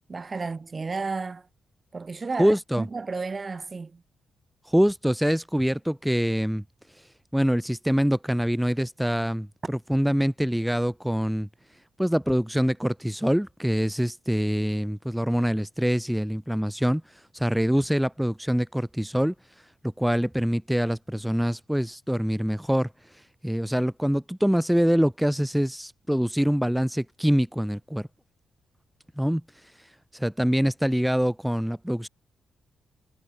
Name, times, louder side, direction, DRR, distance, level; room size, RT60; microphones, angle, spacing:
voice 1, 0.1-1.4 1.9-4.0, right 4 dB, 35° right, 0.9 m, -32 dB
voice 2, 2.4-2.9 4.6-28.1 29.2-32.1, equal, ahead, 0.6 m, -25 dB
cardioid pair, 85°, 0 cm